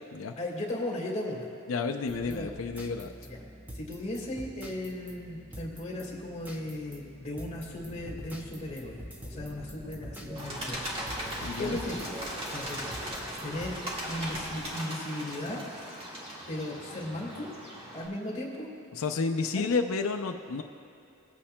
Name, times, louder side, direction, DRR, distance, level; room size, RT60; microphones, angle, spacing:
voice 1, 0.4-1.5 2.2-2.7 3.3-3.4 3.7-10.8 11.6-12.0 12.5-12.9 13.4-13.7 14.1-15.6 16.5-17.5 17.9-18.7 19.5-19.6, left 1 dB, 35° left, -2 dB, 1.9 m, -36 dB
voice 2, 1.7-3.1 11.4-11.8 18.9-20.6, left 4 dB, 85° left, 5 dB, 0.5 m, -31 dB
sound 1, 2.1-13.7, right 1 dB, 10° right, 0.7 m, -45 dB
Engine, 7.6-14.7, equal, 45° right, 1.7 m, -52 dB
Bird, 10.3-18.1, equal, 30° right, 1.8 m, -38 dB
21.0 x 8.5 x 2.2 m, 2.6 s
head